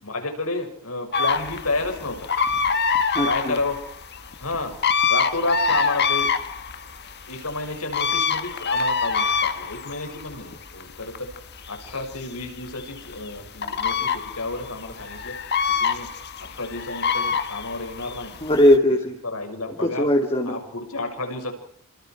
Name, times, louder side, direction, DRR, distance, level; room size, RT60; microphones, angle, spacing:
voice 1, 0.0-2.3 3.2-3.8 4.4-4.8 5.1-6.3 7.3-11.3 11.7-15.3 15.8-16.1 16.4-18.4 19.2-20.1 20.4-21.5, left 2 dB, 80° left, 5 dB, 6.5 m, -31 dB
sound 1, 1.1-18.8, left 5 dB, 50° left, 1.6 m, -26 dB
voice 2, 3.1-3.6 18.4-19.2 19.8-20.6, left 1 dB, 25° left, 2 dB, 2.7 m, -19 dB
29.0 x 26.5 x 4.8 m, 0.62 s
head